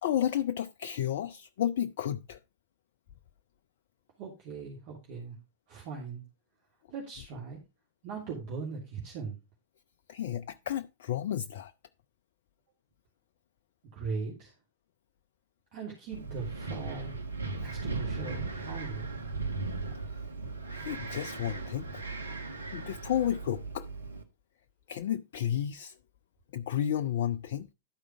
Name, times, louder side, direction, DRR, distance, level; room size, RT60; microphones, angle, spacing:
voice 1, 0.0-2.4 10.1-11.7 20.1-20.2 20.7-22.0 22.7-23.9 24.9-26.0 26.5-27.7, left 10 dB, 55° left, 0.4 m, -32 dB
voice 2, 4.2-5.4 5.7-6.2 6.9-7.6 8.0-9.4 13.9-14.5 15.7-17.2 17.6-19.0, right 4 dB, 45° right, 2.7 m, -39 dB
Wind, 16.1-24.2, right 3 dB, 75° right, 1.2 m, -37 dB
12.0 x 4.9 x 4.8 m
figure-of-eight pair, 90°, 0 cm